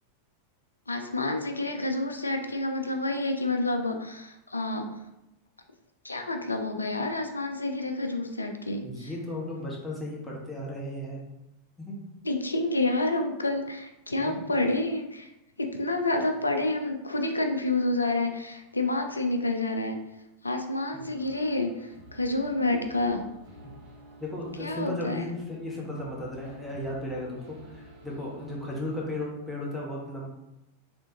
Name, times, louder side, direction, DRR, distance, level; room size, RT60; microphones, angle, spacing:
voice 1, 0.9-4.9 6.0-9.1 12.2-15.3 15.6-20.0 20.4-23.2 24.6-25.2, left 2 dB, 80° left, 5 dB, 0.4 m, -29 dB
voice 2, 8.8-11.2 11.8-12.0 14.2-14.4 20.9-21.1 23.6-23.7 24.2-30.3, left 1 dB, 5° left, -5 dB, 1.2 m, -35 dB
sound 1, 21.1-29.3, equal, 50° right, 1.4 m, -51 dB
3.5 x 3.4 x 2.8 m, 0.90 s
figure-of-eight pair, 90°, 0 cm